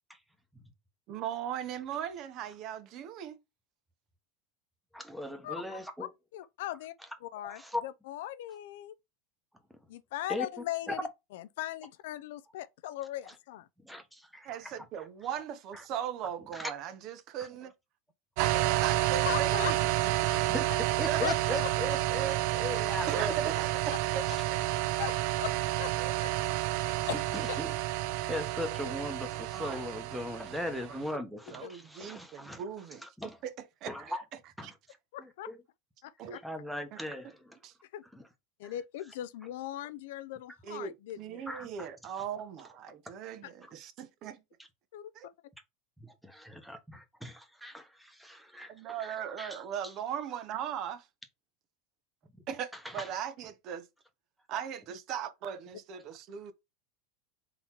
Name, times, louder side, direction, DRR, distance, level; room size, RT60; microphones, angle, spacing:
voice 1, 1.1-3.4 14.5-17.7 18.4-20.5 21.0-21.7 23.1-24.3 26.0-26.1 29.3-29.8 30.8-31.1 31.5-34.7 36.2-36.4 36.9-37.3 37.6-37.7 40.6-44.4 45.1-45.3 48.7-51.1 52.5-53.8 54.5-56.5, right 9 dB, 50° right, 0.7 m, -39 dB
voice 2, 4.9-6.1 7.4-7.8 10.3-10.5 10.9-11.0 13.8-14.9 15.7-15.8 16.5-16.7 20.3-20.7 21.0-23.5 27.6-27.7 28.2-32.6 33.0-33.4 33.9-34.2 34.6-34.7 36.4-37.6 38.6-38.7 41.5-41.9 44.6-44.7 46.0-49.6 52.8-53.1, left 1 dB, ahead, 0.9 m, -39 dB
voice 3, 5.4-7.0 7.2-9.0 9.9-13.7 19.3-20.3 21.2-21.4 24.3-24.4 25.0-25.5 25.8-25.9 26.2-26.3 27.1-27.6 30.6-30.7 31.6-31.8 35.1-35.5 36.0-36.4 37.8-38.0 38.6-41.5 43.4-43.5 44.9-45.3, left 14 dB, 80° left, 0.4 m, -39 dB
sound 1, 18.4-31.0, right 16 dB, 65° right, 0.3 m, -30 dB
3.9 x 2.9 x 4.4 m
supercardioid pair, 125°, 0 cm